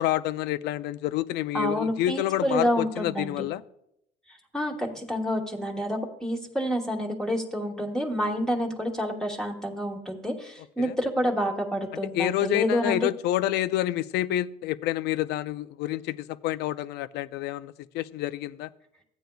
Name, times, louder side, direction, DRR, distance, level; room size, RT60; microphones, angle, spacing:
voice 1, 0.0-3.6 10.8-10.9 12.1-18.7, left 14 dB, 80° left, 15 dB, 0.4 m, -28 dB
voice 2, 1.5-3.5 4.3-13.0, equal, 5° left, 0 dB, 1.2 m, -28 dB
14.5 x 9.0 x 2.3 m, 0.79 s
cardioid pair, 110°, 17 cm